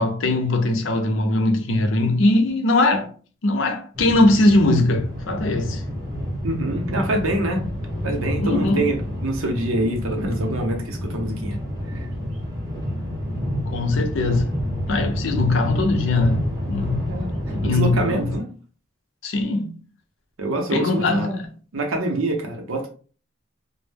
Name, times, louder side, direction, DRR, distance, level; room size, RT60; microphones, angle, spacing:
voice 1, 0.0-3.1 3.4-5.8 8.4-9.0 13.5-14.5 14.9-17.1 17.5-18.3 19.2-19.7 20.7-21.5, left 2 dB, 70° left, 0.5 m, -21 dB
sound 1, 3.9-18.4, equal, 15° right, 0.7 m, -29 dB
voice 2, 6.4-7.6 8.0-11.6 11.9-12.1 17.1-17.3 17.6-18.5 20.4-21.4 21.7-22.9, right 1 dB, 80° right, 0.6 m, -25 dB
2.1 x 2.0 x 3.2 m
head